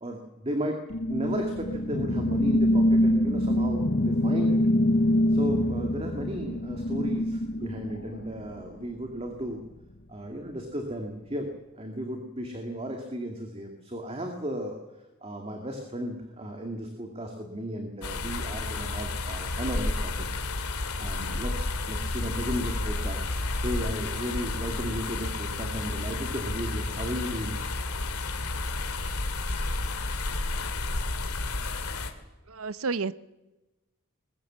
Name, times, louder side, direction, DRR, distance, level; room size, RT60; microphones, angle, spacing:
voice 1, 0.0-4.6 5.3-9.6 10.1-11.5 11.7-14.8 15.2-20.3 21.0-23.2 23.6-27.5, equal, 25° right, 3 dB, 2.2 m, -34 dB
sound 1, 0.9-8.7, left 1 dB, 50° left, 0.8 m, -25 dB
sound 2, 18.0-32.1, left 2 dB, 90° left, 2.3 m, -31 dB
voice 2, 32.5-33.1, right 4 dB, 75° right, 16 dB, 0.8 m, -30 dB
21.5 x 21.0 x 7.5 m, 1.1 s
head